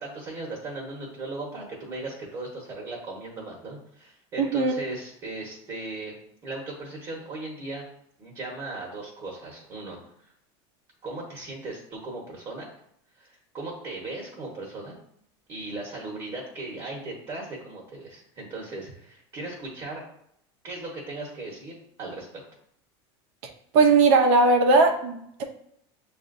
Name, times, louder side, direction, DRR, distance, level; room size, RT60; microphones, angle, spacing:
voice 1, 0.0-6.1 6.4-7.8 8.2-10.0 11.0-12.7 13.2-15.0 15.5-20.0 20.6-22.4, right 2 dB, 30° right, -2 dB, 1.1 m, -37 dB
voice 2, 4.4-4.7 23.7-25.4, right 3 dB, 60° right, 4 dB, 0.7 m, -19 dB
6.8 x 2.5 x 2.6 m, 0.73 s
supercardioid pair, 150°, 13 cm